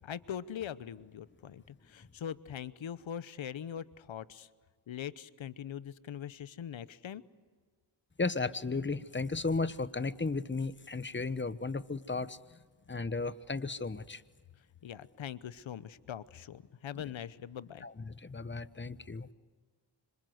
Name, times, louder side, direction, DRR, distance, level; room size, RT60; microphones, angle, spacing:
voice 1, 0.0-4.5 4.9-7.2 14.8-17.9, left 9 dB, 90° left, 16 dB, 1.0 m, -42 dB
voice 2, 8.2-12.6 12.9-14.2 17.8-19.3, left 3 dB, 25° left, 15 dB, 1.1 m, -35 dB
26.5 x 26.0 x 8.0 m, 1.5 s
cardioid pair, 65°, 45 cm